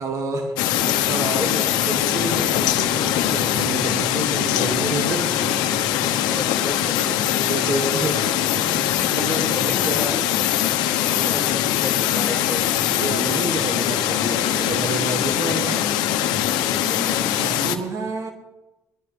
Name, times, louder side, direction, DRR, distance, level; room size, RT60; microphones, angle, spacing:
voice 1, 0.0-5.6 5.9-6.1 7.0-10.2 11.2-11.4 12.9-16.0 17.4-18.3, right 3 dB, 50° right, 3 dB, 2.2 m, -30 dB
sound 1, 0.6-17.8, left 11 dB, 90° left, 1.0 m, -22 dB
voice 2, 1.3-1.7 6.3-7.0 9.3-10.4 11.0-12.7 16.6-17.4, left 2 dB, 10° left, 2 dB, 4.5 m, -33 dB
21.0 x 12.5 x 3.4 m, 1.0 s
supercardioid pair, 75°, 7 cm